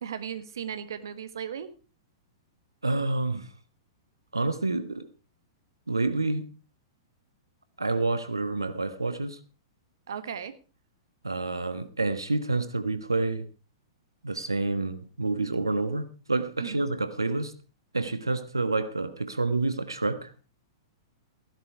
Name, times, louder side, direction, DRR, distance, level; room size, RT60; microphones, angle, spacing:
voice 1, 0.0-1.7 10.1-10.5 16.6-16.8, right 8 dB, 70° right, 1.3 m, -36 dB
voice 2, 2.8-3.5 4.3-5.1 5.9-6.5 7.8-9.4 11.2-13.5 14.2-17.5 17.9-20.3, right 3 dB, 90° right, 1.3 m, -28 dB
16.0 x 11.0 x 4.6 m
figure-of-eight pair, 105°, 2 cm